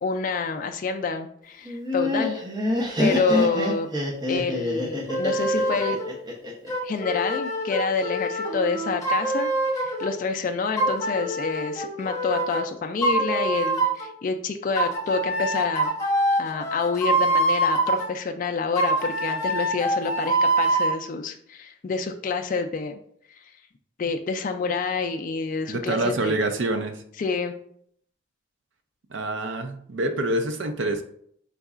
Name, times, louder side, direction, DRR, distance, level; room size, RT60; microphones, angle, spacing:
voice 1, 0.0-2.4 3.0-3.9 4.3-6.0 6.8-15.9 16.4-23.0 24.0-26.3 27.2-27.5, left 4 dB, 40° left, 5 dB, 0.3 m, -28 dB
Laughter, 1.6-6.7, left 1 dB, 20° right, 0.7 m, -26 dB
sound 1, 5.1-6.1 6.7-10.1 10.8-12.6 13.0-14.1 14.8-18.1 18.8-21.0, right 1 dB, 15° left, 1.0 m, -25 dB
voice 2, 25.7-27.0 29.1-31.0, right 2 dB, 65° right, 7 dB, 0.5 m, -26 dB
4.5 x 4.0 x 2.4 m, 0.67 s
head